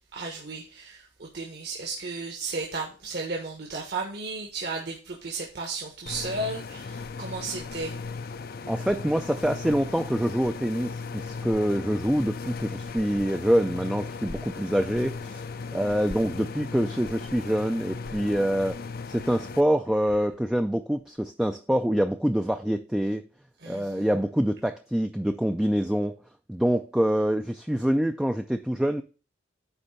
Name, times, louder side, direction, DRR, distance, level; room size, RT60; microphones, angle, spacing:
voice 1, 0.1-7.9 23.6-24.1, right 3 dB, 60° right, 0 dB, 1.4 m, -34 dB
sound 1, 6.1-19.6, left 4 dB, 50° left, 0.5 m, -37 dB
voice 2, 8.7-15.4 15.7-18.8 19.1-23.2 23.7-26.2 26.5-29.0, equal, 5° right, 6 dB, 0.4 m, -25 dB
9.7 x 3.3 x 6.6 m, 0.35 s
head